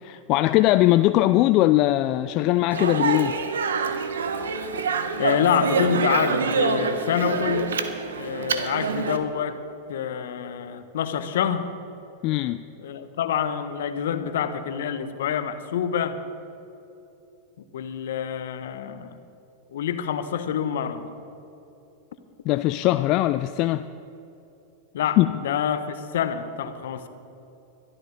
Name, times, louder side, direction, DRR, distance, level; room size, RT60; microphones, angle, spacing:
voice 1, 0.0-3.3 12.2-12.6 22.4-23.9 25.2-25.4, left 16 dB, 45° left, 11 dB, 0.4 m, -20 dB
Speech, 2.7-9.2, right 5 dB, 80° right, 1.1 m, -26 dB
voice 2, 5.2-7.7 8.1-9.6 9.9-11.7 12.8-16.2 17.6-19.2 19.7-21.1 24.9-27.1, left 8 dB, 70° left, 10 dB, 1.1 m, -27 dB
22.0 x 13.0 x 4.1 m, 2.8 s
hypercardioid pair, 100°, 0 cm